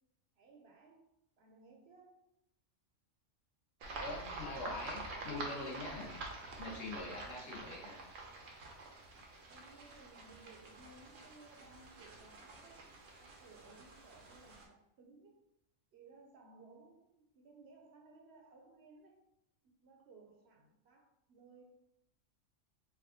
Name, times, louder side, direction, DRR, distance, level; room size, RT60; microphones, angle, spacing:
voice 1, 0.4-1.1 1.4-2.3 7.2-7.6 9.5-12.9 13.2-15.4 15.9-19.2 19.6-21.6, right 3 dB, 65° right, 1 dB, 0.8 m, -60 dB
sound 1, 3.8-14.6, right 2 dB, 85° right, 1.1 m, -48 dB
voice 2, 3.9-6.1 6.6-8.0, left 2 dB, 55° left, -2 dB, 0.9 m, -44 dB
3.4 x 2.2 x 3.6 m, 0.79 s
omnidirectional pair, 1.3 m